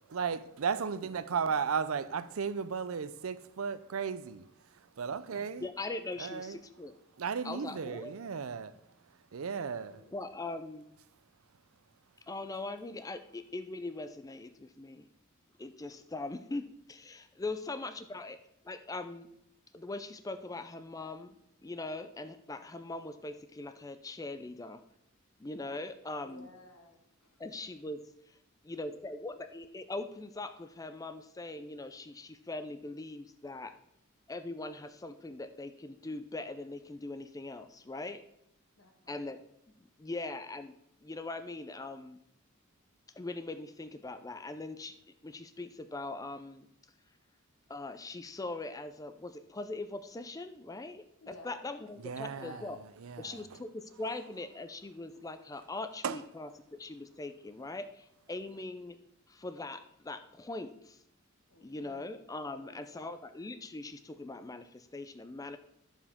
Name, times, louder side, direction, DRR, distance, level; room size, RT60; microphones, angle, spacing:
voice 1, 0.1-4.5 5.0-5.7 6.2-6.6 7.2-8.7 9.3-10.0 52.0-52.6 53.0-53.4 56.0-56.2, right 6 dB, 85° right, 0.5 m, -35 dB
voice 2, 5.6-6.9 7.4-8.1 10.1-10.9 12.3-15.1 15.6-18.4 18.6-19.3 19.7-21.4 21.6-24.8 25.4-26.5 27.4-28.0 28.6-33.7 34.3-38.2 39.1-39.4 39.8-40.7 41.0-42.2 43.2-44.9 45.2-46.7 47.7-52.8 53.2-59.0 59.3-61.0 61.6-65.6, left 2 dB, 15° left, 0.4 m, -41 dB
voice 3, 9.4-10.1 22.6-22.9 26.2-27.4 38.8-39.2 51.2-51.8 52.3-52.7 53.1-53.4 61.5-62.2 62.6-63.1, left 2 dB, 75° left, 1.5 m, -56 dB
11.0 x 7.2 x 3.6 m
head